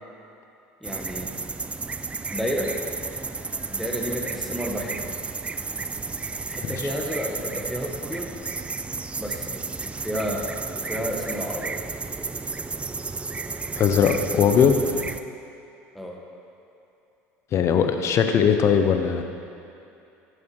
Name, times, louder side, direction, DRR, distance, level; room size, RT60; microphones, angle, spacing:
voice 1, 0.8-1.3 2.3-2.7 3.7-5.0 6.5-8.3 9.2-11.8 15.9-16.2, equal, ahead, -2 dB, 1.5 m, -31 dB
sound 1, 0.8-15.2, right 4 dB, 20° right, 0.4 m, -32 dB
voice 2, 13.8-14.8 17.5-19.2, left 7 dB, 50° left, 6 dB, 0.8 m, -19 dB
10.5 x 7.3 x 4.7 m, 2.8 s
supercardioid pair, 85°, 6 cm